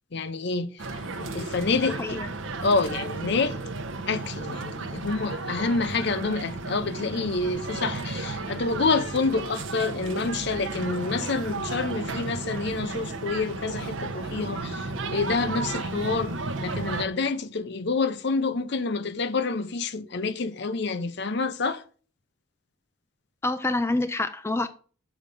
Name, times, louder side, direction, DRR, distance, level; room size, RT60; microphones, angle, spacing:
voice 1, 0.1-0.9 1.2-2.2 2.6-3.6 4.1-16.3 16.6-21.8, left 4 dB, 55° left, 0.6 m, -28 dB
sound 1, 0.8-17.0, right 3 dB, 65° right, 0.8 m, -33 dB
voice 2, 23.4-24.7, left 2 dB, 10° left, 0.4 m, -27 dB
7.2 x 5.1 x 6.8 m
head